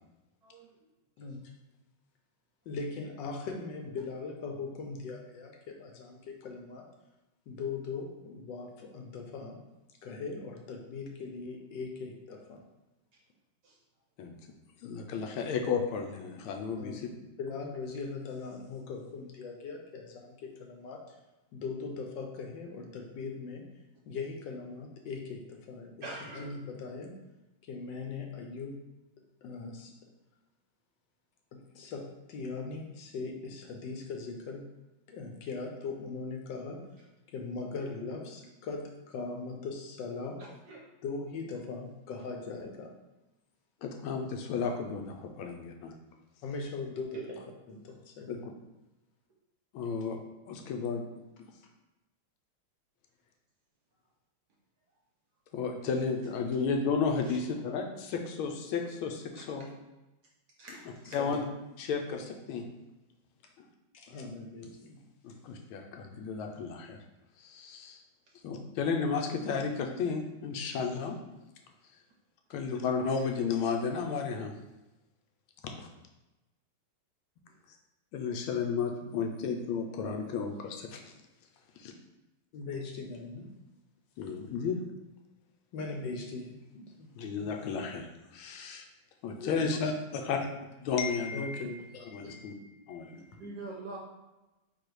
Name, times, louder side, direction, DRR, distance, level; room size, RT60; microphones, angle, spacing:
voice 1, 2.7-6.9 7.5-9.6 10.0-12.6 16.8-17.1 17.4-21.2 21.5-23.7 24.1-26.1 26.3-27.1 27.6-28.8 29.4-29.9 31.5-34.7 35.1-36.8 37.3-40.4 41.0-42.9 46.4-47.4 47.7-48.3 61.0-61.4 63.9-65.0 82.5-83.5 85.7-87.1 89.4-89.9 91.3-92.3 93.1-93.2, left 4 dB, 70° left, 2 dB, 1.2 m, -40 dB
voice 2, 14.8-17.1 43.8-45.9 48.3-48.4 49.7-50.2 50.5-51.0 55.5-59.7 61.1-61.5 61.8-62.6 63.6-63.7 65.2-67.0 67.4-68.0 68.4-71.2 72.5-74.5 75.8-75.9 78.1-81.1 81.8-81.9 84.2-84.8 87.2-88.1 88.3-88.8 89.2-90.4 90.8-91.6 92.1-92.5 92.9-93.2, left 5 dB, 90° left, 3 dB, 1.5 m, -33 dB
voice 3, 26.0-26.5 40.7-40.9 47.1-47.3 59.4-59.5 60.6-61.2 77.5-77.6 93.4-94.0, right 3 dB, 70° right, -1 dB, 1.0 m, -43 dB
4.1 x 2.7 x 4.6 m, 1.0 s
omnidirectional pair, 2.3 m